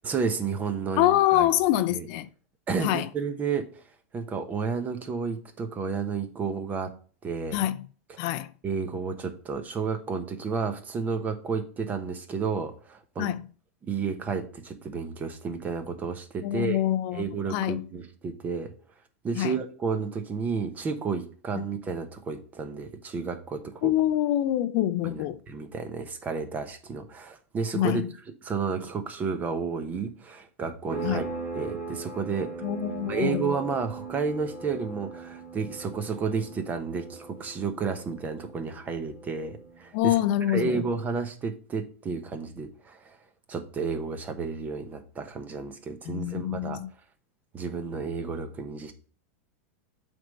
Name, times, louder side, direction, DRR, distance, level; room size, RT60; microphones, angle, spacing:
voice 1, 0.0-1.5 1.9-2.1 2.7-3.8 4.1-6.9 7.2-7.6 8.1-8.2 8.6-13.3 13.8-16.8 17.1-18.7 19.2-23.9 25.0-28.0 28.4-32.5 33.1-40.2 40.5-43.2 43.5-46.8 47.5-48.9, right 5 dB, 20° right, 1.0 m, -31 dB
voice 2, 1.0-2.3 2.8-3.1 7.5-7.8 8.2-8.5 13.2-13.4 16.4-17.2 17.5-17.8 19.4-19.5 23.8-25.4 27.7-28.1 31.0-31.2 32.6-33.5 39.9-40.8 46.1-46.9, left 13 dB, 50° left, 0.5 m, -25 dB
sound 1, 30.9-41.2, right 4 dB, 40° right, 2.3 m, -40 dB
7.7 x 3.5 x 5.3 m
hypercardioid pair, 130°, 7 cm